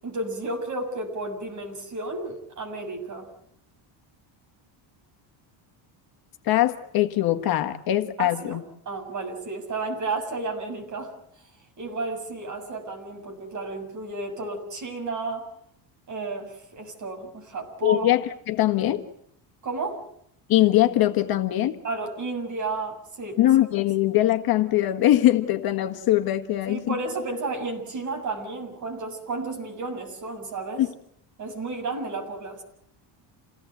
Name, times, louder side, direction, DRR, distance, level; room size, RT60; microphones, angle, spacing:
voice 1, 0.0-3.3 8.2-11.1 11.8-15.5 16.1-18.1 19.6-20.0 21.8-23.4 26.7-30.9 31.4-32.6, right 3 dB, 35° right, 3 dB, 7.0 m, -32 dB
voice 2, 6.4-8.6 17.8-19.0 20.5-21.8 23.4-27.0 30.8-30.9, left 14 dB, 50° left, 6 dB, 1.6 m, -22 dB
28.5 x 17.5 x 8.0 m, 0.71 s
cardioid pair, 170°, 47 cm